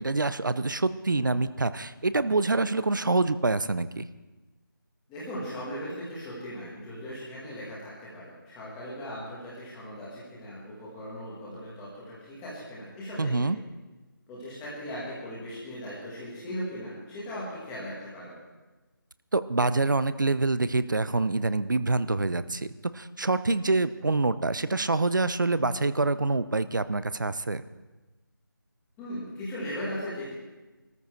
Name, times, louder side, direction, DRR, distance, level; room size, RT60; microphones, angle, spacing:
voice 1, 0.0-4.1 13.2-13.6 19.3-22.7 22.9-27.6, right 3 dB, 60° right, 14 dB, 0.8 m, -26 dB
voice 2, 5.1-13.6 14.3-18.4 29.0-30.3, equal, 5° left, -8 dB, 1.4 m, -38 dB
20.0 x 14.0 x 4.5 m, 1.2 s
figure-of-eight pair, 180°, 12 cm